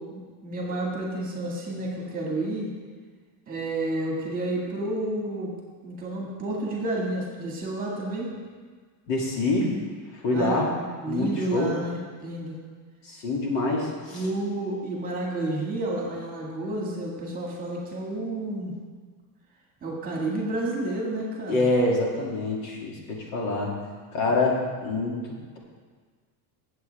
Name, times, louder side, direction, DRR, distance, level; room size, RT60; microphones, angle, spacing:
voice 1, 0.0-2.7 3.5-5.5 5.8-8.3 10.3-10.6 11.0-12.6 14.1-18.7 19.8-21.7, right 1 dB, 20° right, -3 dB, 2.0 m, -30 dB
voice 2, 9.1-9.7 10.2-10.7 11.1-11.7 13.0-14.3 21.5-23.7 24.1-25.2, left 2 dB, 65° left, -2 dB, 2.6 m, -25 dB
16.5 x 7.9 x 3.5 m, 1.5 s
cardioid pair, 165°, 46 cm